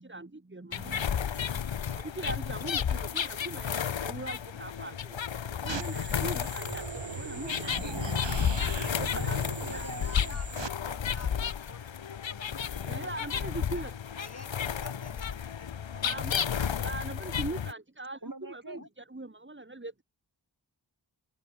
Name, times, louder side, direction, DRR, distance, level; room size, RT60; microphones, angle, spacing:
voice 1, 0.0-1.6 1.9-5.2 5.5-8.2 9.0-9.4 9.7-9.9 12.8-13.9 16.0-16.5 16.8-20.0, right 2 dB, 25° right, 1.7 m, -41 dB
sound 1, 0.7-17.7, left 8 dB, 80° left, 0.8 m, -32 dB
sound 2, 5.7-10.7, right 5 dB, 75° right, 1.4 m, -39 dB
voice 2, 7.5-8.1 9.1-10.4 18.2-18.9, right 2 dB, 45° right, 6.3 m, -45 dB
voice 3, 9.7-11.9 12.1-13.1 13.7-13.9 14.2-16.2 16.5-16.9 17.2-17.3 18.7-18.9, left 2 dB, 35° left, 1.8 m, -49 dB
open air
wide cardioid pair, 45°, 45 cm